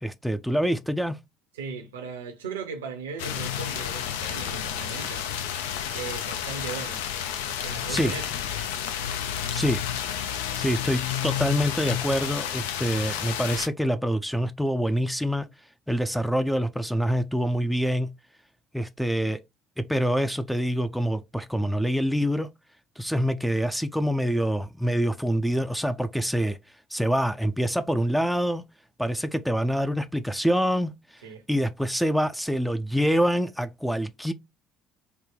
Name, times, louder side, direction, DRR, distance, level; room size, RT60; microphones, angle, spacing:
voice 1, 0.0-1.2 7.9-8.1 9.5-9.8 10.6-15.5 15.9-18.1 18.7-19.4 19.8-22.5 23.0-26.6 26.9-28.6 29.0-34.3, equal, ahead, 0.4 m, -26 dB
voice 2, 1.5-5.3 5.9-7.0 7.6-8.4 31.2-31.5, right 5 dB, 80° right, 0.6 m, -37 dB
sound 1, 3.2-13.7, left 9 dB, 75° left, 0.3 m, -31 dB
3.3 x 2.1 x 3.7 m
figure-of-eight pair, 55°, 0 cm